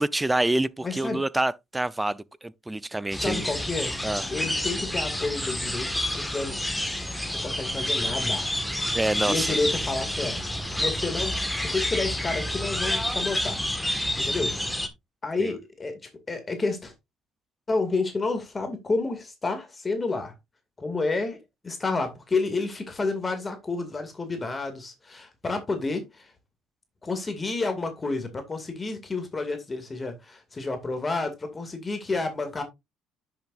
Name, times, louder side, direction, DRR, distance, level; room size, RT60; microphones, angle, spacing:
voice 1, 0.0-3.4 4.0-4.3 8.9-9.6 15.4-15.5, right 2 dB, 10° right, 0.5 m, -27 dB
voice 2, 0.8-1.2 3.1-3.9 4.3-6.6 7.3-8.5 9.3-10.4 10.8-13.6 14.2-14.5 15.2-16.0 16.3-16.9 17.7-20.3 20.8-21.4 21.6-26.3 27.0-32.6, left 3 dB, 25° left, 2.2 m, -30 dB
sound 1, 3.1-14.9, left 1 dB, 5° left, 1.6 m, -29 dB
10.0 x 6.9 x 2.5 m
supercardioid pair, 85°, 0 cm